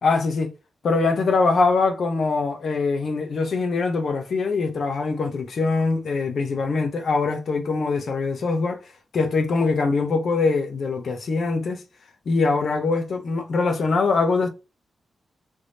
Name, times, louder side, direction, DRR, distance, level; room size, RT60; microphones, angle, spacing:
voice 1, 0.0-0.5 0.8-8.8 9.1-11.8 12.3-14.5, left 4 dB, 55° left, 0.9 m, -23 dB
3.5 x 3.4 x 4.1 m
wide cardioid pair, 165°, 0 cm